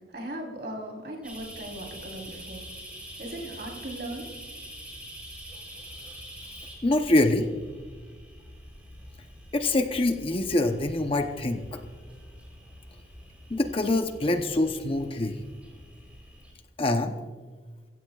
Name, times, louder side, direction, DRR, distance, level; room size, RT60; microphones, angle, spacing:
voice 1, 0.1-2.6 3.2-4.2, right 1 dB, 60° right, 0 dB, 3.8 m, -38 dB
sound 1, 1.2-16.5, equal, 5° right, 3.8 m, -45 dB
voice 2, 6.8-7.5 9.5-11.8 13.5-15.3 16.8-17.1, left 2 dB, 30° left, 6 dB, 0.8 m, -25 dB
23.5 x 15.5 x 2.4 m, 1.5 s
head